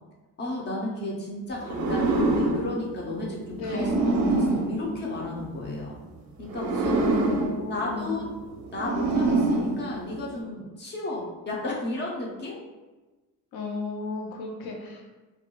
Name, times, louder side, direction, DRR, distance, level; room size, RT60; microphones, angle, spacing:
voice 1, 0.4-6.0 6.4-7.0 7.7-8.3 8.7-12.6, left 2 dB, 30° left, -3 dB, 0.4 m, -33 dB
sound 1, 1.6-5.7 6.4-10.4, right 2 dB, 60° right, 0.4 m, -26 dB
voice 2, 3.5-4.0 6.8-8.2 13.5-15.2, left 2 dB, 90° left, 0 dB, 0.6 m, -34 dB
2.3 x 2.1 x 2.9 m, 1.2 s
cardioid pair, 155°, 35 cm